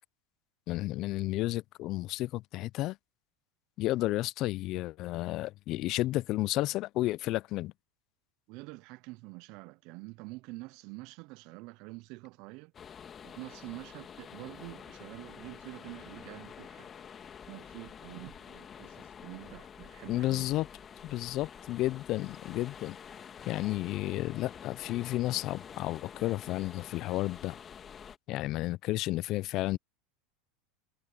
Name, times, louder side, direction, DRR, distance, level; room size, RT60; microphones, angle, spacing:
voice 1, 0.7-3.0 3.8-7.7 20.1-20.7 21.0-23.0 23.5-27.6 28.3-29.8, left 17 dB, 50° left, 0.4 m, -32 dB
voice 2, 8.5-12.7 13.2-17.1 17.5-20.5, right 24 dB, 60° right, 0.5 m, -47 dB
sound 1, 12.7-28.2, left 7 dB, 30° left, 2.0 m, -48 dB
hypercardioid pair, 100°, 0 cm